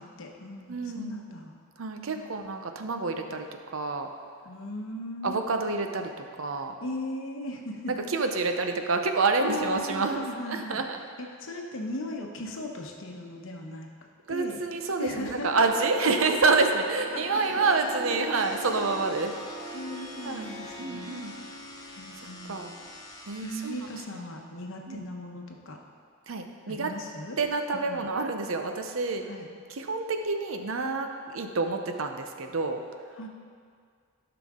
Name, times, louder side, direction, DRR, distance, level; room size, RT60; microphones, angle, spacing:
voice 1, 0.0-1.5 2.1-2.3 4.4-5.4 6.8-7.9 8.5-8.6 9.4-10.8 11.2-13.9 14.3-14.6 15.0-16.3 17.1-17.6 18.2-18.3 19.7-21.1 22.0-22.7 23.4-25.8 26.7-27.4 27.7-28.1 29.3-29.5 33.2-33.3, left 1 dB, 65° left, 2 dB, 1.0 m, -37 dB
voice 2, 0.7-1.1 1.8-3.5 3.7-4.1 5.2-6.1 6.4-6.7 7.9-11.0 14.3-19.3 20.1-20.5 20.8-21.3 22.5-22.7 23.3-23.8 24.1-24.2 24.9-25.0 26.3-26.9 27.4-29.2 29.7-32.8, right 3 dB, 70° right, 5 dB, 0.6 m, -28 dB
Harp, 16.5-23.0, right 1 dB, 25° right, 2.0 m, -41 dB
sound 1, 18.3-24.0, left 2 dB, 15° left, 0.8 m, -47 dB
12.0 x 5.9 x 3.7 m, 2.1 s
head